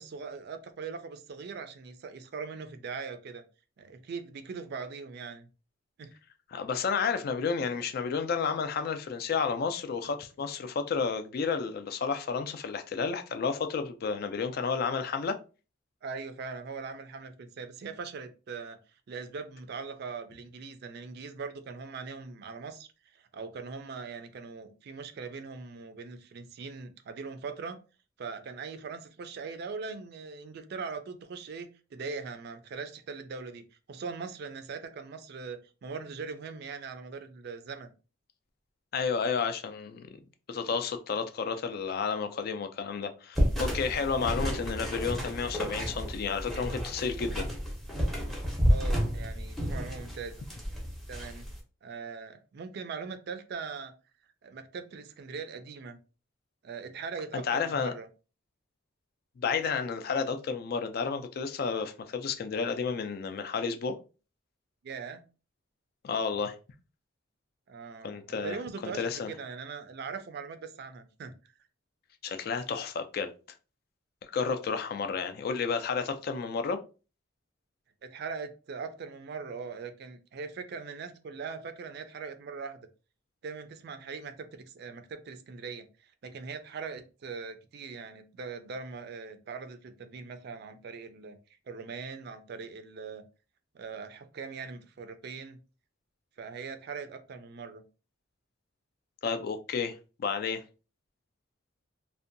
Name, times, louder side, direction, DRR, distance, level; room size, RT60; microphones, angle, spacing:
voice 1, 0.0-3.4 3.8-5.5 6.0-6.1 16.0-18.8 19.1-27.8 28.2-37.9 44.1-44.3 48.7-50.3 51.1-51.5 51.8-53.9 54.4-56.0 56.6-58.1 64.8-65.2 67.7-71.3 78.0-82.8 83.4-85.9 86.2-91.4 91.7-93.2 93.7-95.6 96.4-97.8, right 5 dB, 55° right, 0.3 m, -41 dB
voice 2, 6.5-15.4 38.9-40.1 40.5-47.5 57.3-57.9 59.4-64.0 66.0-66.6 68.0-68.6 68.8-69.3 72.2-73.3 74.3-76.8 99.2-100.6, left 5 dB, 50° left, 0.3 m, -31 dB
sound 1, 43.3-51.6, equal, ahead, 0.6 m, -31 dB
2.6 x 2.1 x 2.5 m
head